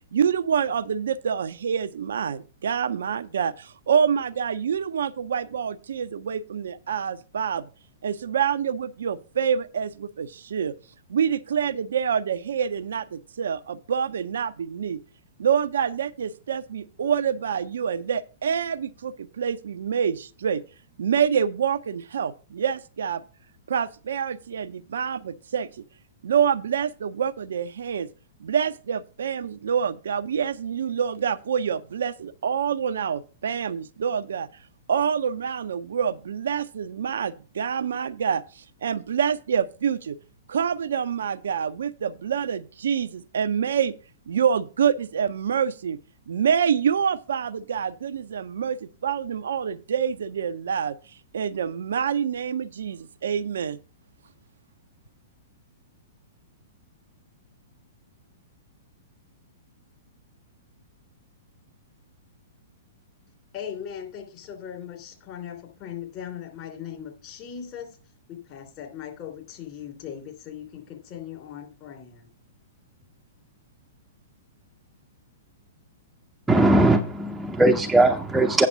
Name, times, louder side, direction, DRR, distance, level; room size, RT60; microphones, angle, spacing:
voice 1, 0.1-7.7 8.0-10.7 11.1-15.0 15.4-20.6 21.0-23.2 23.7-25.7 26.2-28.1 28.4-34.5 34.9-40.2 40.5-43.9 44.3-46.0 46.3-51.0 51.3-53.8, right 7 dB, 60° right, 0.5 m, -26 dB
voice 2, 63.5-67.9 68.3-72.3, left 9 dB, 35° left, 3.0 m, -39 dB
voice 3, 76.5-78.7, right 2 dB, 5° right, 0.6 m, -19 dB
8.5 x 6.5 x 5.0 m
figure-of-eight pair, 105°, 0 cm